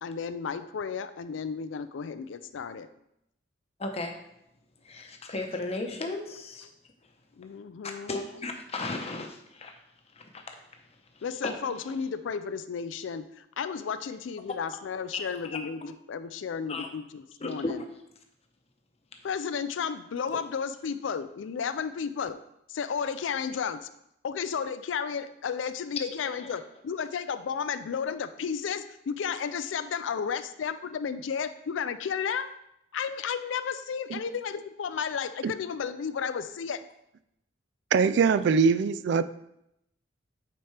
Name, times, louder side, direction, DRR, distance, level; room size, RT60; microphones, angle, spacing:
voice 1, 0.0-2.9 7.4-8.1 11.2-17.8 19.2-22.4 22.7-23.8 24.2-32.5 32.9-36.8, left 6 dB, 75° left, 12 dB, 0.4 m, -33 dB
voice 2, 3.8-4.2 4.8-6.7 7.8-9.8 10.1-10.5 11.1-11.2 11.8-11.9 15.1-15.6 16.7-16.9 17.4-17.9 26.4-26.5, left 2 dB, 35° left, 3 dB, 0.8 m, -35 dB
voice 3, 37.9-39.2, right 5 dB, 65° right, 14 dB, 0.3 m, -22 dB
8.8 x 4.3 x 3.3 m, 0.79 s
head